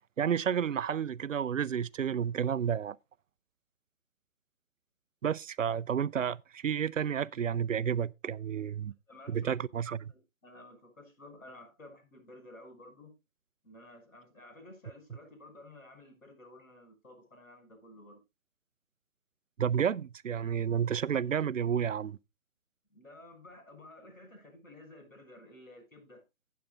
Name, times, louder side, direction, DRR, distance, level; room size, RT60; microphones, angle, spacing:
voice 1, 0.2-3.0 5.2-8.9 9.3-10.1 19.6-22.2, right 8 dB, 70° right, 0.6 m, -31 dB
voice 2, 9.1-9.6 10.1-13.1 13.6-18.2 22.9-26.2, left 1 dB, 75° left, 7.0 m, -53 dB
15.0 x 8.5 x 2.4 m
figure-of-eight pair, 145°, 41 cm